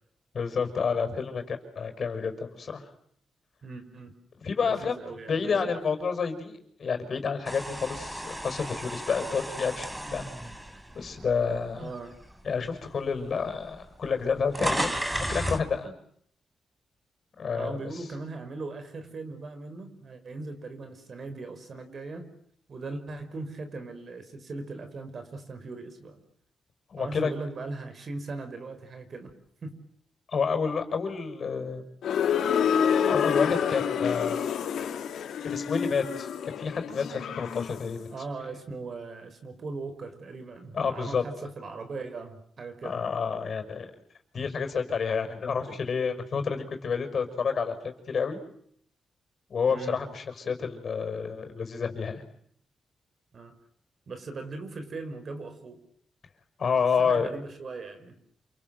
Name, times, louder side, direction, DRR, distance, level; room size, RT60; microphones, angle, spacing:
voice 1, 0.3-2.9 4.4-5.0 5.3-10.3 10.9-11.9 12.4-14.9 15.3-15.9 17.4-18.1 26.9-27.3 30.3-31.8 33.1-34.4 35.4-36.3 36.6-38.1 40.7-41.2 42.8-43.9 44.3-48.4 49.5-52.2 56.6-57.3, left 5 dB, 60° left, 7 dB, 5.8 m, -29 dB
voice 2, 3.6-4.1 4.6-5.8 11.8-12.1 17.5-22.3 22.7-26.2 27.0-29.3 29.6-29.8 38.1-43.0 49.7-50.0 53.3-53.5 54.1-55.8 57.0-58.1, right 3 dB, 55° right, 9 dB, 5.7 m, -39 dB
sound 1, 7.4-11.7 12.2-12.4 13.3-13.4 13.6-15.7, right 1 dB, 10° right, 4.0 m, -33 dB
sound 2, 32.0-37.9, left 8 dB, 85° left, 2.9 m, -28 dB
28.0 x 25.5 x 8.0 m, 0.67 s
cardioid pair, 75°, 0 cm